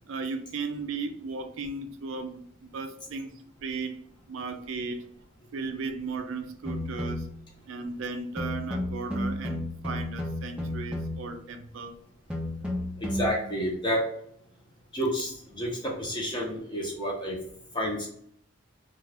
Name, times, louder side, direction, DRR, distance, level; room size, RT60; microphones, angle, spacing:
voice 1, 0.1-3.3 3.6-4.0 4.3-5.0 5.5-7.3 7.7-12.0, right 4 dB, 70° right, 7 dB, 0.4 m, -35 dB
sound 1, 6.6-7.4 8.4-11.4 12.3-13.4, left 1 dB, 5° right, 0.4 m, -33 dB
voice 2, 13.0-14.0 14.9-17.4 17.7-18.1, equal, 20° left, -2 dB, 0.8 m, -30 dB
2.4 x 2.3 x 3.3 m, 0.66 s
head